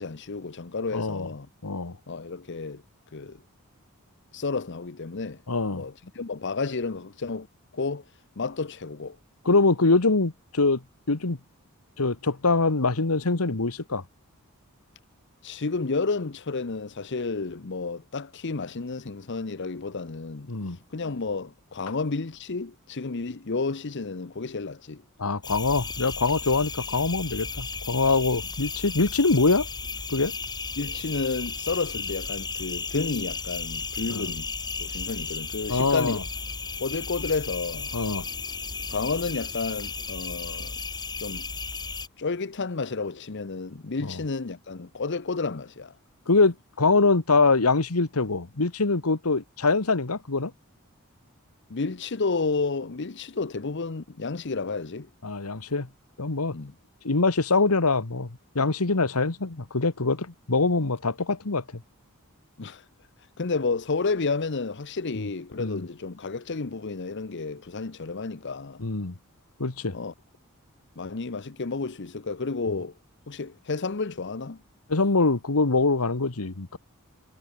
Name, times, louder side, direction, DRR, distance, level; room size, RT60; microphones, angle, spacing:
voice 1, 0.0-1.5 2.1-2.8 3.1-3.4 4.3-5.4 5.7-7.5 7.7-8.0 8.4-9.2 15.4-20.5 20.9-25.0 30.8-34.5 34.8-36.2 36.8-38.0 38.9-40.8 41.2-41.5 42.2-45.9 51.7-55.1 56.5-56.7 62.6-62.8 63.4-68.8 69.9-70.1 71.0-72.9 73.3-74.6, left 4 dB, 55° left, 0.8 m, -31 dB
voice 2, 0.9-1.3 1.6-2.0 5.5-5.8 9.4-10.8 11.1-11.4 12.0-14.0 20.5-20.8 25.2-29.7 30.1-30.3 34.1-34.3 35.7-36.2 37.9-38.2 44.0-44.2 46.3-50.5 55.2-55.9 56.2-56.6 57.0-58.3 58.5-61.6 65.2-65.3 65.6-65.8 68.8-69.1 69.6-69.9 74.9-76.8, left 3 dB, 90° left, 1.5 m, -24 dB
sound 1, 25.4-42.1, left 4 dB, 20° left, 2.7 m, -34 dB
head